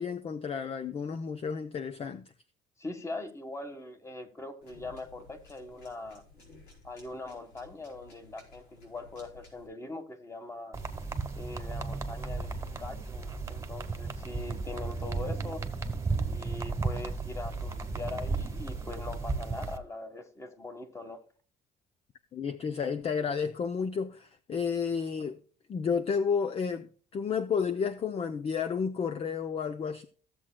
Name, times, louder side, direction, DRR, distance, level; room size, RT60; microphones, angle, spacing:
voice 1, 0.0-2.3 22.3-25.4 25.7-30.1, left 6 dB, 35° left, 0.6 m, -31 dB
voice 2, 2.8-6.2 6.8-10.8 11.3-15.6 16.3-21.2, left 2 dB, 15° left, 1.5 m, -42 dB
sound 1, 4.6-9.7, left 2 dB, 85° left, 4.7 m, -56 dB
sound 2, 10.7-19.8, right 3 dB, 15° right, 1.2 m, -34 dB
15.5 x 7.4 x 2.2 m
cardioid pair, 110°, 17 cm